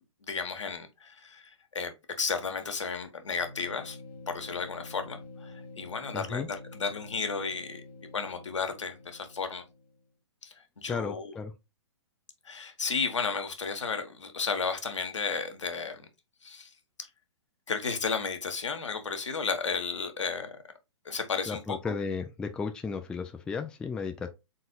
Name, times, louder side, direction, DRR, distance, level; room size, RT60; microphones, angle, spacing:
voice 1, 0.2-4.0 4.3-7.8 8.1-9.6 10.4-11.4 12.4-16.1 16.4-16.7 17.7-20.5 21.0-22.0, left 5 dB, 75° left, 1.0 m, -33 dB
sound 1, 3.4-10.0, left 3 dB, 60° left, 1.3 m, -47 dB
voice 2, 6.1-6.5 10.9-11.5 21.5-24.3, left 5 dB, 5° left, 0.3 m, -34 dB
4.1 x 4.1 x 2.2 m
figure-of-eight pair, 120°, 15 cm